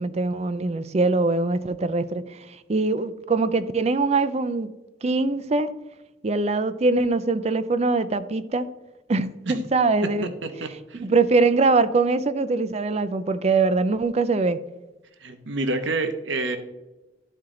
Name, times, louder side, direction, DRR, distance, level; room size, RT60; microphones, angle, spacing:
voice 1, 0.0-2.2 2.7-4.7 5.0-5.7 6.2-8.7 9.1-10.3 10.9-14.6, right 3 dB, 35° right, 13 dB, 0.4 m, -22 dB
voice 2, 10.6-11.0 15.2-16.6, right 2 dB, 75° right, 8 dB, 0.8 m, -28 dB
12.5 x 4.4 x 3.8 m, 1.0 s
head